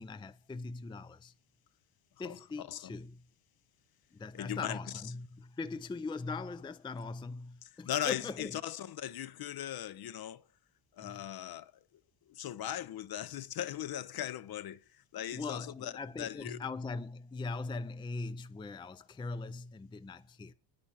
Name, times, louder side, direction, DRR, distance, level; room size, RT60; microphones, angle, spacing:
voice 1, 0.0-1.3 2.2-3.2 4.1-8.6 11.0-11.2 15.3-20.5, left 3 dB, 10° left, 0.5 m, -41 dB
voice 2, 4.3-4.8 7.8-10.4 11.0-11.7 12.3-14.8 15.1-15.9 16.2-16.6, left 11 dB, 45° left, 0.7 m, -38 dB
9.3 x 8.5 x 7.2 m
supercardioid pair, 85°, 50 cm